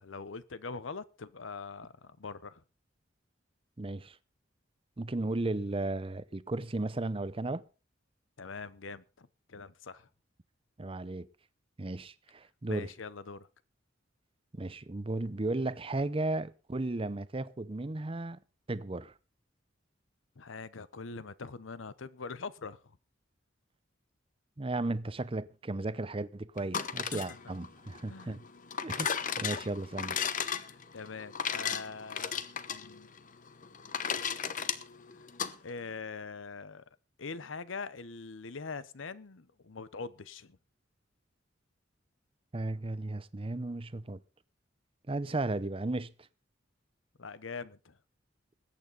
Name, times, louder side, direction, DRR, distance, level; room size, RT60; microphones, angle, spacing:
voice 1, 0.0-2.6 8.4-10.1 12.7-13.5 20.4-23.0 27.1-27.4 28.1-28.4 30.5-32.4 32.7-33.1 35.6-36.8 37.2-40.6 47.2-48.0, left 4 dB, 85° left, 0.8 m, -43 dB
voice 2, 3.8-4.2 5.0-7.6 10.8-11.3 11.8-12.9 14.5-18.4 18.7-19.1 24.6-28.4 28.8-30.2 42.5-44.2 45.1-46.1, right 2 dB, 30° right, 0.7 m, -35 dB
sound 1, 26.6-35.5, left 7 dB, 45° left, 0.9 m, -35 dB
21.0 x 8.7 x 4.0 m
head